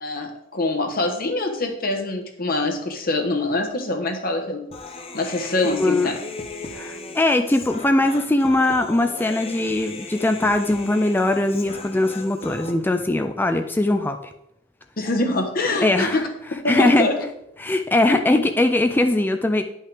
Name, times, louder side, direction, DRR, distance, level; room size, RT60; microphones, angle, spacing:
voice 1, 0.0-4.6 5.1-6.1 15.0-16.2 16.6-17.1, left 2 dB, 50° left, 3 dB, 1.1 m, -24 dB
Human voice, 4.7-12.7, left 2 dB, 30° left, 0.7 m, -37 dB
voice 2, 6.7-14.2 15.8-16.2 16.7-17.1 17.6-19.6, left 2 dB, 10° left, 6 dB, 0.3 m, -20 dB
10.0 x 5.5 x 3.4 m, 0.80 s
head